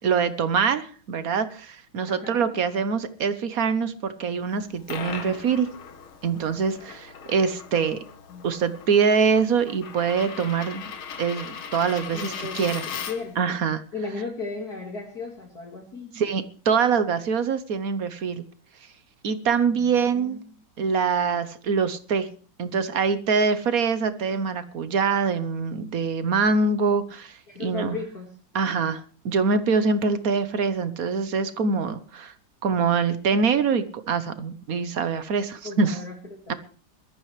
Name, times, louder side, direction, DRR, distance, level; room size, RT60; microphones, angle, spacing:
voice 1, 0.0-5.7 6.2-8.0 8.4-10.9 11.2-12.9 13.4-13.8 16.1-18.4 19.2-20.4 20.8-22.3 22.6-28.0 28.5-32.3 32.6-36.0 36.5-36.6, right 5 dB, 55° right, 12 dB, 1.2 m, -24 dB
voice 2, 2.1-2.5 8.3-8.5 12.1-12.6 13.1-13.3 13.9-16.1 19.8-20.4 27.5-28.3 35.6-36.5, left 4 dB, 50° left, 1 dB, 2.6 m, -35 dB
Coin (dropping), 4.5-13.4, left 7 dB, 85° left, 2.3 m, -38 dB
21.0 x 13.5 x 3.3 m, 0.40 s
omnidirectional pair, 2.2 m